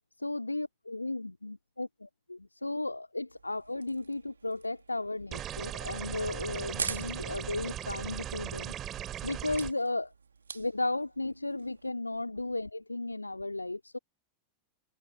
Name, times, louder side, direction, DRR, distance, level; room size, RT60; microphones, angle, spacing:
voice 1, 0.2-8.7 9.0-10.1 10.5-14.0, left 2 dB, 85° left, 2.9 m, -35 dB
sound 1, 3.3-11.9, right 5 dB, 75° right, 2.9 m, -45 dB
sound 2, 5.3-9.7, right 11 dB, 30° right, 3.7 m, -38 dB
figure-of-eight pair, 90°, 0 cm